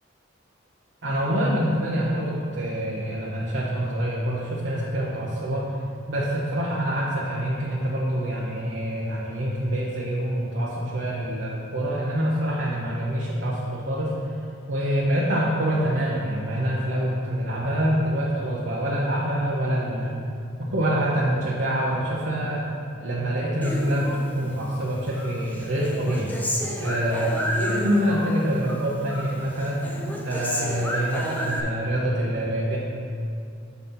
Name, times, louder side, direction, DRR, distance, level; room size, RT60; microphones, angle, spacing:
voice 1, 1.0-5.7 6.1-14.3 14.7-20.2 20.7-22.7 23.0-24.1 24.3-26.3 26.8-27.3 27.6-29.8 30.2-32.8, right 1 dB, 65° right, -5 dB, 0.9 m, -26 dB
Human voice, 23.6-24.8 25.1-28.3 28.6-29.4 29.6-31.6, equal, 10° left, 0.7 m, -31 dB
7.2 x 4.1 x 5.6 m, 2.5 s
head